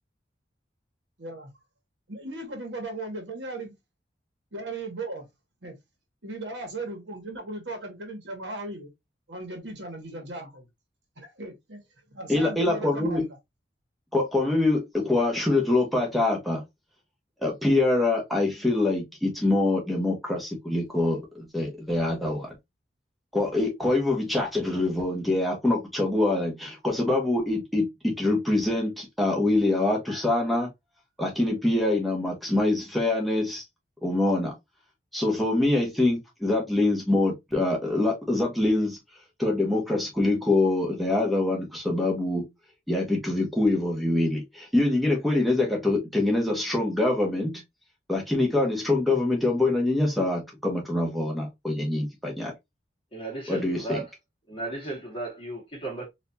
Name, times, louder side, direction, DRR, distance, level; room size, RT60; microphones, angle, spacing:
voice 1, 1.2-1.5 2.1-3.7 4.5-5.3 5.6-5.8 6.2-8.9 9.3-10.7 11.2-11.8 12.1-13.3, right 2 dB, 90° right, 1.5 m, -37 dB
voice 2, 12.3-13.2 14.1-16.6 17.4-22.5 23.3-30.7 31.2-33.6 34.0-34.5 35.1-39.0 39.4-42.5 42.9-47.5 48.1-52.5 53.5-54.0, left 2 dB, ahead, 1.3 m, -25 dB
voice 3, 53.1-54.1 54.5-56.1, right 2 dB, 30° left, 1.9 m, -35 dB
4.3 x 2.8 x 2.7 m
head